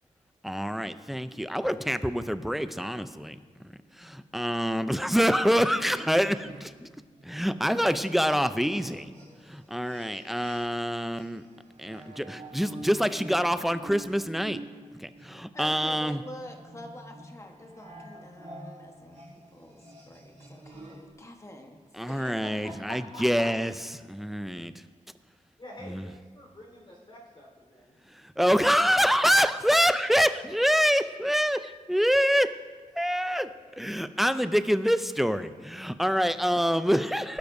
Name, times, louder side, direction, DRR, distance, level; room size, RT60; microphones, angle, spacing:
voice 1, 0.4-3.4 3.6-6.9 7.2-9.1 9.5-11.4 11.8-14.6 15.0-16.2 22.0-24.7 25.8-26.1 28.4-31.6 31.9-32.5 33.0-37.4, equal, ahead, 11 dB, 0.5 m, -26 dB
sound 1, 5.1-10.9 11.1-21.1, right 1 dB, 55° right, 4.3 m, -48 dB
voice 2, 15.5-21.8 22.1-22.3, equal, 20° left, 3 dB, 1.2 m, -46 dB
voice 3, 22.1-23.5 25.6-28.0, left 1 dB, 40° left, -3 dB, 4.1 m, -45 dB
21.0 x 12.0 x 2.7 m, 1.4 s
wide cardioid pair, 125°, 13 cm